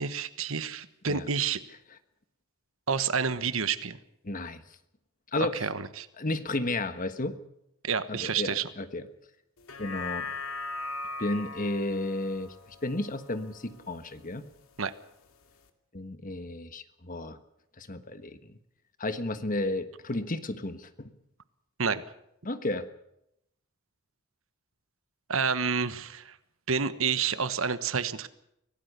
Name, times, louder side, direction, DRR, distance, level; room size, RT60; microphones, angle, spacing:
voice 1, 0.0-1.6 2.9-4.0 5.4-6.1 7.8-8.7 14.8-14.9 21.8-22.0 25.3-26.4 26.7-28.3, right 6 dB, 65° right, 13 dB, 1.3 m, -29 dB
voice 2, 4.2-4.6 5.3-5.7 6.2-7.4 8.1-9.1 9.8-10.3 11.2-12.5 12.8-14.4 15.9-17.4 17.8-18.4 19.0-21.1 22.4-22.8, left 2 dB, 40° left, 10 dB, 1.4 m, -32 dB
sound 1, 9.6-14.1 14.6-14.7, left 3 dB, 75° left, 2.2 m, -39 dB
25.0 x 17.5 x 6.8 m, 0.78 s
head